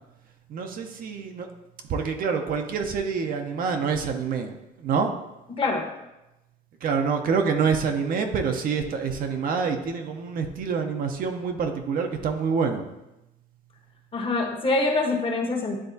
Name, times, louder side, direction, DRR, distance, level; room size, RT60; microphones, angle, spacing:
voice 1, 0.5-1.5 1.9-5.1 6.8-12.9, right 5 dB, 60° right, 5 dB, 0.7 m, -26 dB
voice 2, 5.6-5.9 14.1-15.8, left 3 dB, 30° left, 1 dB, 1.1 m, -25 dB
9.8 x 3.5 x 2.7 m, 0.95 s
cardioid pair, 110°, 17 cm